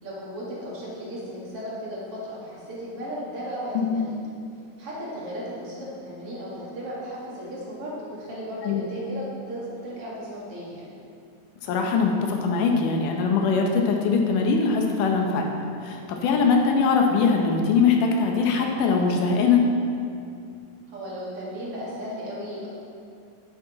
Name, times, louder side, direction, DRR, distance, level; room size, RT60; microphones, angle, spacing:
voice 1, 0.0-4.2 4.8-10.9 20.9-22.7, equal, 50° right, -7 dB, 2.7 m, -35 dB
voice 2, 11.6-15.5 15.8-19.7, left 5 dB, 85° left, 2 dB, 2.6 m, -22 dB
9.9 x 8.5 x 4.0 m, 2.4 s
omnidirectional pair, 3.6 m